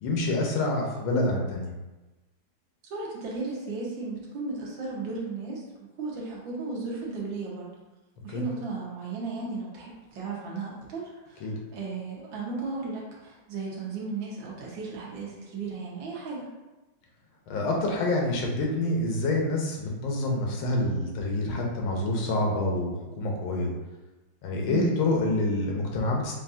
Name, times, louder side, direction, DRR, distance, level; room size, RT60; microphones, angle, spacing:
voice 1, 0.0-1.7 8.3-8.4 11.4-11.5 17.5-23.7 24.4-26.4, left 2 dB, 85° left, 0 dB, 1.6 m, -27 dB
voice 2, 2.8-5.6 6.0-7.7 8.2-16.5 24.7-24.9, right 4 dB, 75° right, -4 dB, 1.7 m, -35 dB
5.7 x 2.5 x 2.6 m, 1.1 s
omnidirectional pair, 2.2 m